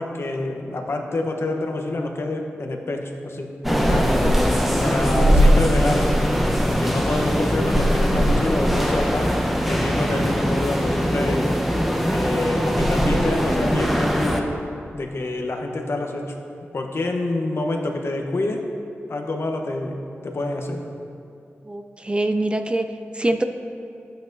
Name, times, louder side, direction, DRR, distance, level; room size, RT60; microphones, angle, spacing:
voice 1, 0.0-4.2 4.8-6.2 6.7-9.3 9.7-11.5 12.1-14.5 14.9-16.4 16.7-18.6 19.1-20.8, left 2 dB, 60° left, 3 dB, 0.9 m, -27 dB
sound 1, 3.6-14.4, equal, 5° right, 0.8 m, -20 dB
voice 2, 21.6-23.4, right 1 dB, 20° right, 7 dB, 0.4 m, -24 dB
11.5 x 8.8 x 2.6 m, 2.5 s
wide cardioid pair, 70°, 5 cm